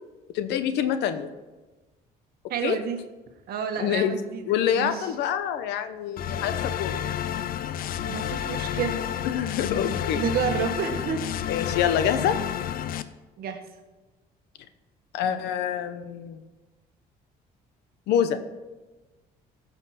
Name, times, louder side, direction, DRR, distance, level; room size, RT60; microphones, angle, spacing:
voice 1, 0.3-1.3 2.6-2.8 3.8-4.2 4.5-7.0 9.2-10.2 11.5-12.4 15.1-16.4 18.1-18.4, left 9 dB, 85° left, 11 dB, 1.0 m, -26 dB
voice 2, 2.5-3.0 3.5-4.5 4.7-5.1 8.1-9.0 10.2-11.3 13.4-13.6, right 7 dB, 65° right, 6 dB, 1.5 m, -29 dB
sound 1, 6.2-13.0, left 10 dB, 60° left, 0.6 m, -30 dB
15.5 x 5.9 x 5.8 m, 1.2 s
cardioid pair, 110°, 17 cm